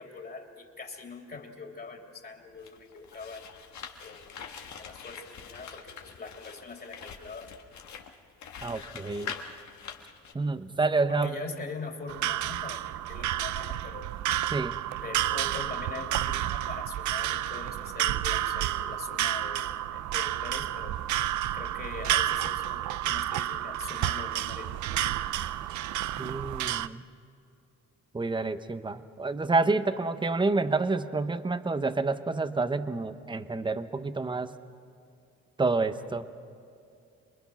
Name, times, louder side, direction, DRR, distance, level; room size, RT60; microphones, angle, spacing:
voice 1, 0.0-3.4 4.0-7.5 11.1-14.1 15.0-21.0 21.5-24.8, left 4 dB, 30° left, 2 dB, 3.1 m, -42 dB
sound 1, 2.5-10.3, left 7 dB, 65° left, 1.8 m, -44 dB
voice 2, 8.6-9.3 10.3-11.3 14.5-14.8 26.2-27.0 28.1-34.5 35.6-36.2, right 3 dB, 15° right, 11 dB, 0.9 m, -28 dB
sound 2, 12.1-26.9, right 13 dB, 70° right, 0.6 m, -30 dB
28.0 x 21.5 x 6.0 m, 2.5 s
cardioid pair, 90°, 30 cm